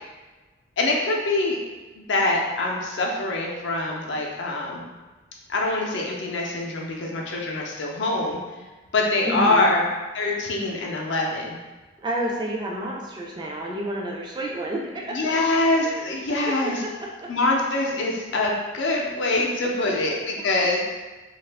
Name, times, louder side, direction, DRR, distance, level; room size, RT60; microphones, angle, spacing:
voice 1, 0.8-1.6 2.0-4.9 5.5-8.4 8.9-9.8 10.1-11.6 15.1-16.8 17.3-20.8, left 2 dB, 65° left, -1 dB, 0.5 m, -24 dB
voice 2, 9.2-9.7 12.0-15.3 15.8-16.0 16.6-16.9 17.2-17.3 19.8-20.2, right 1 dB, 20° right, -2 dB, 0.3 m, -30 dB
2.7 x 2.3 x 3.3 m, 1.2 s
head